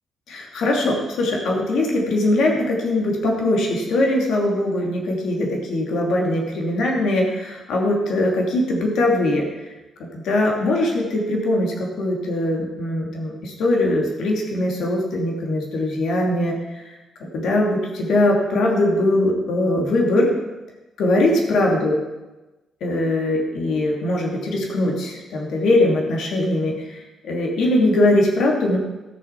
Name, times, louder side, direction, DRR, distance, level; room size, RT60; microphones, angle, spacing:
voice 1, 0.3-9.5 10.0-16.8 17.2-20.3 21.0-22.0 22.8-28.8, left 1 dB, 75° left, 0 dB, 2.7 m, -21 dB
14.0 x 6.9 x 5.9 m, 1.1 s
cardioid pair, 95°, 0 cm